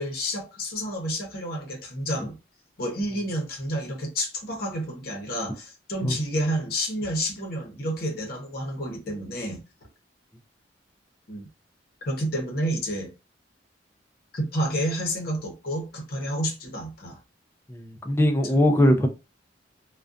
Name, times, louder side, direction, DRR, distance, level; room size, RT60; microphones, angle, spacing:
voice 1, 0.0-2.4 2.8-9.6 11.3-11.5 12.1-13.1 14.3-17.2, equal, 55° left, 0.7 m, -30 dB
voice 2, 17.7-19.1, equal, 15° left, 0.3 m, -21 dB
2.4 x 2.2 x 2.4 m
head